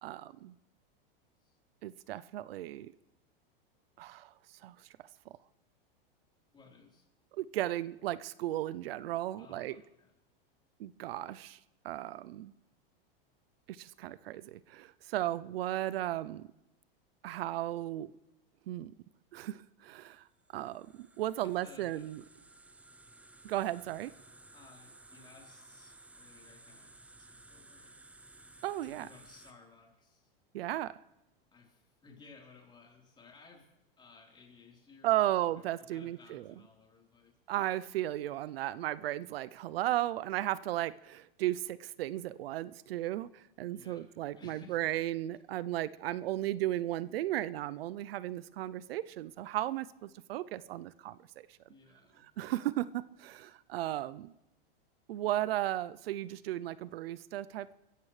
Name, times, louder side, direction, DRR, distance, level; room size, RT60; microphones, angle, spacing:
voice 1, 0.0-0.5 1.8-2.9 4.0-4.3 4.6-4.9 7.3-9.7 10.8-11.6 11.8-12.5 13.7-16.5 17.2-18.1 18.7-18.9 19.3-20.3 20.5-22.2 23.4-24.1 28.6-29.1 30.5-31.0 35.0-36.4 37.5-51.5 52.4-54.3 55.1-57.7, right 14 dB, 80° right, 18 dB, 0.6 m, -35 dB
voice 2, 6.5-7.1 9.4-10.1 21.4-22.1 24.5-28.0 28.8-30.3 31.5-33.7 34.0-37.4 43.7-44.1 44.4-44.9 51.7-52.2, left 4 dB, 15° left, -1 dB, 3.9 m, -58 dB
sound 1, 20.4-29.5, right 2 dB, 5° right, 0.6 m, -57 dB
29.0 x 15.0 x 3.3 m, 0.94 s
supercardioid pair, 140°, 29 cm